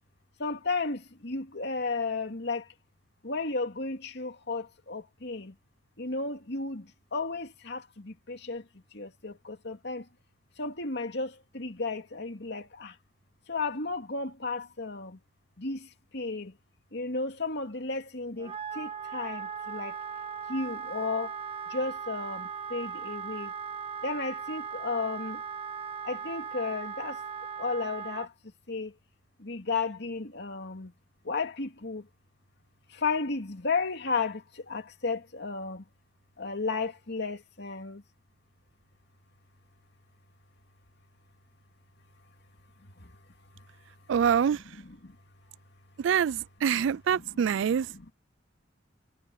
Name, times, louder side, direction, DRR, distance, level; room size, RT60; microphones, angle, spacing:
voice 1, 0.4-2.7 3.2-5.5 6.0-10.1 10.6-13.0 13.5-15.2 15.6-16.6 16.9-20.0 20.5-21.4 21.7-23.6 24.0-25.4 26.0-27.2 27.6-28.9 29.4-30.9 31.2-32.1 32.9-35.9 36.4-38.0 42.8-43.2 43.5-43.7 44.6-45.2 46.6-48.1, left 4 dB, 60° left, 2.5 m, -34 dB
Wind instrument woodwind instrument, 18.4-28.3, right 6 dB, 30° right, 1.4 m, -38 dB
voice 2, 44.1-44.6 46.0-47.9, right 8 dB, 70° right, 0.3 m, -25 dB
head